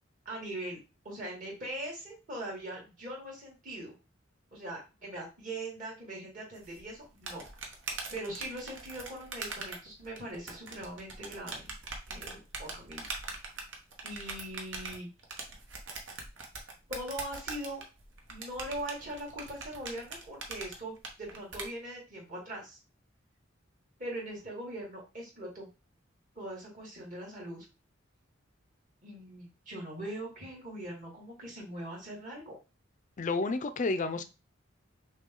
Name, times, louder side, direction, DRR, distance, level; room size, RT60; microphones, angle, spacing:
voice 1, 0.3-0.8 1.0-3.9 4.5-7.4 8.1-11.7 12.1-13.0 14.0-15.1 16.9-17.8 18.3-22.8 24.0-25.7 26.4-27.7 29.0-32.6 34.1-34.2, right 1 dB, 45° right, 2.3 m, -41 dB
sound 1, 6.6-21.7, right 3 dB, 70° right, 1.0 m, -42 dB
voice 2, 33.2-34.2, left 3 dB, 40° left, 0.5 m, -30 dB
6.1 x 2.3 x 3.8 m
head